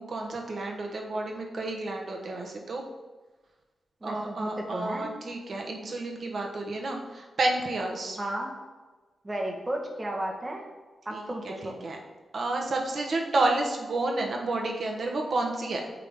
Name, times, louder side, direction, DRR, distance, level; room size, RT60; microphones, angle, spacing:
voice 1, 0.0-2.8 4.0-8.2 11.1-12.0 12.3-15.9, right 2 dB, 60° right, 1 dB, 1.2 m, -30 dB
voice 2, 4.0-5.1 8.2-8.5 9.2-10.6 11.0-11.8, right 1 dB, 25° right, 0 dB, 1.3 m, -33 dB
8.4 x 3.8 x 3.6 m, 1.2 s
cardioid pair, 85°, 0 cm